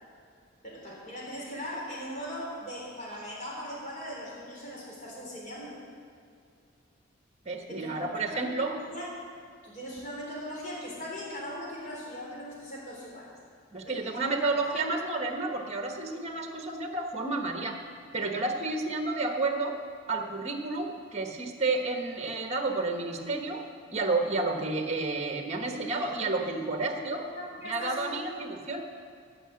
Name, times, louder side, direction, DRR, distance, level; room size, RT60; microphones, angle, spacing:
voice 1, 0.6-5.8 7.7-9.3 9.6-13.3 13.8-14.8 25.7-26.6 27.4-28.4, equal, 40° left, -5 dB, 3.6 m, -40 dB
voice 2, 7.4-8.7 13.7-17.8 18.1-19.8 20.1-23.6 23.9-27.2 27.6-28.8, right 3 dB, 35° right, 4 dB, 1.2 m, -31 dB
15.5 x 5.8 x 7.5 m, 2.3 s
head